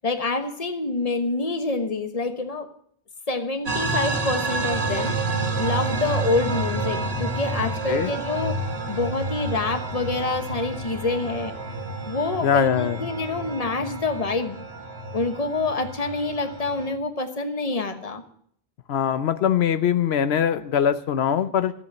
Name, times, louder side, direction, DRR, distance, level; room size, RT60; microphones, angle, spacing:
voice 1, 0.0-2.7 3.3-5.2 5.6-8.6 8.9-11.5 12.0-14.6 15.1-18.2, left 3 dB, 35° left, 8 dB, 1.3 m, -27 dB
sound 1, 3.7-16.9, right 2 dB, 80° right, 2.0 m, -29 dB
voice 2, 12.4-13.0 18.9-21.7, left 8 dB, 85° left, 12 dB, 1.0 m, -22 dB
14.0 x 8.2 x 7.0 m, 0.65 s
omnidirectional pair, 1.0 m